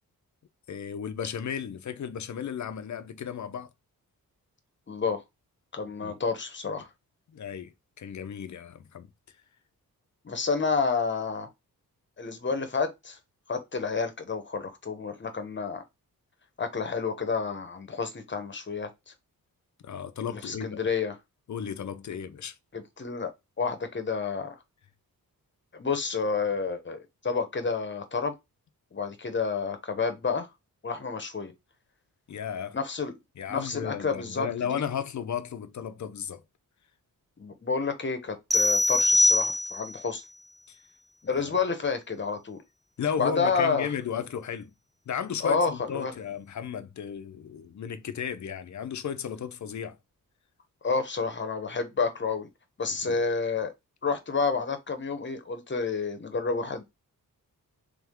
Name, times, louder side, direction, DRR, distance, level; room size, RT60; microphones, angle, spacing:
voice 1, 0.7-3.7 5.9-6.2 7.3-9.1 19.8-20.8 21.5-22.6 32.3-32.8 33.4-36.4 40.7-40.8 41.3-41.6 43.0-44.7 45.1-50.0 53.0-53.2, left 8 dB, 55° left, 0.7 m, -34 dB
voice 2, 4.9-5.2 5.7-6.9 10.2-11.5 12.2-13.2 13.5-15.8 16.6-18.9 20.3-21.2 22.7-23.3 23.6-24.5 25.7-28.3 28.9-30.5 30.8-31.5 32.7-33.1 33.5-34.8 37.4-40.2 41.2-42.6 43.2-43.9 45.4-46.1 50.8-52.5 52.8-53.7 54.0-56.8, left 5 dB, 35° left, 1.1 m, -29 dB
sound 1, 38.5-40.0, left 1 dB, ahead, 0.4 m, -22 dB
3.6 x 3.5 x 3.6 m
wide cardioid pair, 115°, 35 cm